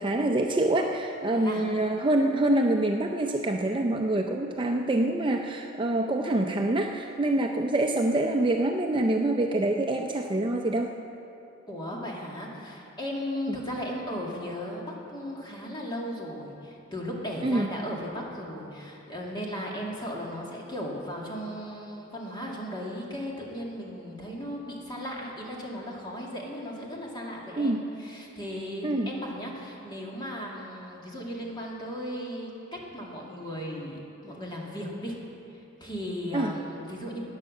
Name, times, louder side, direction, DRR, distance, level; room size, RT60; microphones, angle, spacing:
voice 1, 0.0-10.9 13.5-13.6 17.4-17.7 27.6-27.8 28.8-29.1 36.3-36.5, right 1 dB, 25° right, 3 dB, 0.5 m, -26 dB
voice 2, 1.3-1.7 11.7-35.2 35.8-37.2, equal, 20° left, -3 dB, 2.2 m, -36 dB
12.5 x 9.5 x 7.7 m, 2.8 s
head